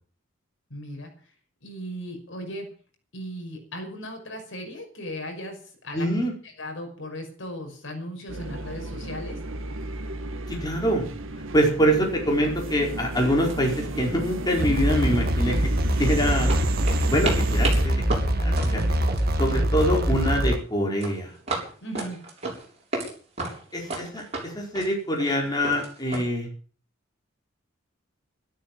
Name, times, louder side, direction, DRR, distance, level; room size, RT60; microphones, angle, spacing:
voice 1, 0.7-1.1 1.6-2.7 3.1-6.1 6.4-9.4 19.6-19.7 21.8-22.2, equal, 65° left, 4 dB, 5.8 m, -37 dB
voice 2, 5.9-6.3 10.5-11.1 11.5-15.6 16.0-16.5 17.1-18.8 19.4-21.3 23.7-26.5, equal, 20° left, 0 dB, 4.6 m, -25 dB
sound 1, 8.3-17.9, right 2 dB, 75° right, 1.7 m, -34 dB
sound 2, 11.9-12.0 12.4-12.7 13.0-13.2 13.5-14.3 14.6-16.1 16.5-20.0 20.2-20.6 21.0-23.1 23.4-26.2, right 2 dB, 30° right, 7.3 m, -34 dB
sound 3, 14.6-20.6, right 1 dB, 50° right, 1.9 m, -23 dB
14.0 x 13.0 x 7.6 m, 0.43 s
head